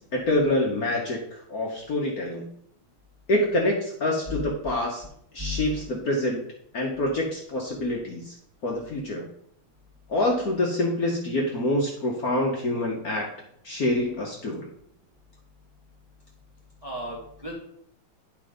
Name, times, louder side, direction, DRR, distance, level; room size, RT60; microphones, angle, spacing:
voice 1, 0.0-2.5 3.3-5.0 5.3-6.4 6.7-8.3 8.6-9.2 10.1-13.3 13.6-14.7, left 1 dB, 50° left, -1 dB, 1.3 m, -26 dB
voice 2, 5.4-5.7 16.8-17.5, left 2 dB, 15° right, -2 dB, 1.2 m, -34 dB
9.4 x 3.8 x 5.0 m, 0.69 s
omnidirectional pair, 2.4 m